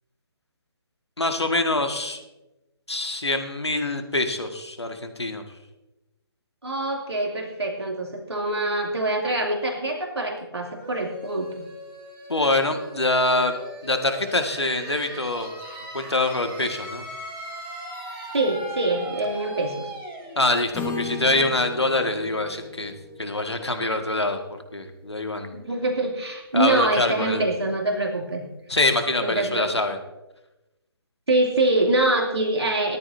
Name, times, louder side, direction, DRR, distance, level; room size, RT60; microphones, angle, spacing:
voice 1, 1.2-2.2 2.9-5.4 12.3-15.5 15.9-17.0 20.4-22.9 23.2-24.4 24.7-25.6 26.5-27.4 28.7-30.0, left 2 dB, 90° left, 6 dB, 1.8 m, -24 dB
voice 2, 6.6-11.7 18.3-19.9 25.5-28.4 29.2-29.7 31.3-33.0, right 2 dB, 80° right, 0 dB, 2.7 m, -24 dB
sound 1, 10.8-22.3, right 1 dB, 15° right, 3.6 m, -39 dB
Acoustic guitar / Strum, 20.7-24.7, left 4 dB, 10° left, 1.5 m, -36 dB
18.5 x 13.0 x 2.7 m, 0.99 s
figure-of-eight pair, 145°, 14 cm